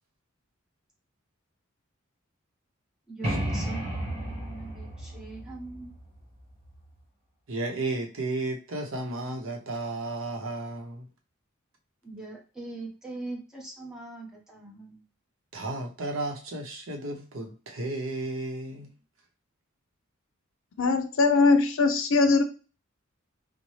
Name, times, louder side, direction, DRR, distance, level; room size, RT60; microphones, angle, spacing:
voice 1, 3.1-5.9 12.0-15.0, right 2 dB, 5° right, -3 dB, 1.0 m, -41 dB
sound 1, 3.2-6.9, right 1 dB, 30° right, 1.3 m, -33 dB
voice 2, 7.5-11.1 15.5-18.9, right 2 dB, 70° right, 2 dB, 0.8 m, -33 dB
voice 3, 20.8-22.4, left 3 dB, 65° left, 8 dB, 0.5 m, -21 dB
4.1 x 2.1 x 3.1 m, 0.35 s
head